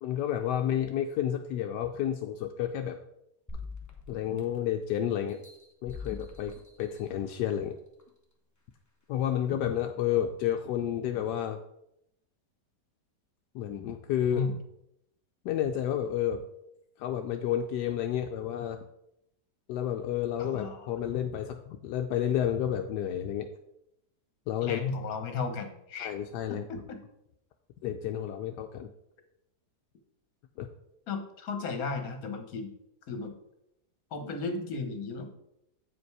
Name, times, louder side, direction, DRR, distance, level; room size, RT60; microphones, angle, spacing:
voice 1, 0.0-3.0 4.1-5.4 5.8-7.7 9.1-11.6 13.5-14.4 15.4-16.4 17.0-18.8 19.7-23.5 24.5-24.8 26.0-26.7 27.8-28.9 30.6-30.7, left 10 dB, 85° left, 5 dB, 1.2 m, -30 dB
sound 1, 3.5-4.8 5.3-7.4 8.0-8.1, left 4 dB, 10° left, 1.0 m, -44 dB
voice 2, 20.4-20.9 24.6-26.1 26.5-27.0 31.1-32.7 33.1-33.3 34.1-35.3, left 4 dB, 60° left, 6 dB, 1.6 m, -35 dB
8.5 x 5.1 x 4.7 m, 0.80 s
omnidirectional pair, 1.8 m